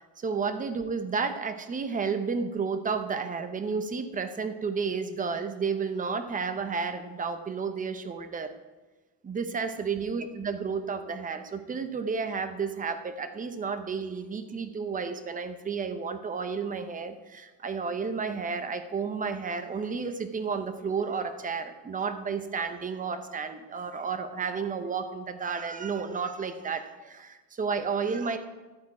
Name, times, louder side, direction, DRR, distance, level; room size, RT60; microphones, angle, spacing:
voice 1, 0.2-8.5 9.2-28.4, right 5 dB, 20° right, 9 dB, 0.7 m, -32 dB
12.5 x 8.1 x 4.8 m, 1.2 s
cardioid pair, 155°, 40 cm